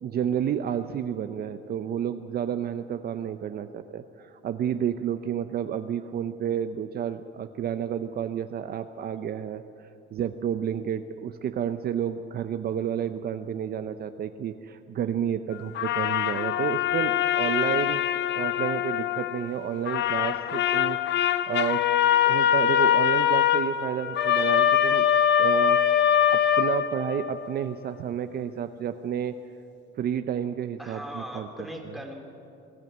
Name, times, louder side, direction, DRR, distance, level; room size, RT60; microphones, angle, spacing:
voice 1, 0.0-18.0 18.4-21.0 21.5-21.8 22.3-25.1 25.4-29.3 30.0-31.5, right 9 dB, 50° right, 9 dB, 0.6 m, -30 dB
sound 1, 15.8-19.5 19.9-27.4, left 10 dB, 60° left, 0.8 m, -23 dB
voice 2, 30.8-32.1, equal, ahead, 1 dB, 2.8 m, -38 dB
21.0 x 14.0 x 9.3 m, 2.8 s
cardioid pair, 155°, 21 cm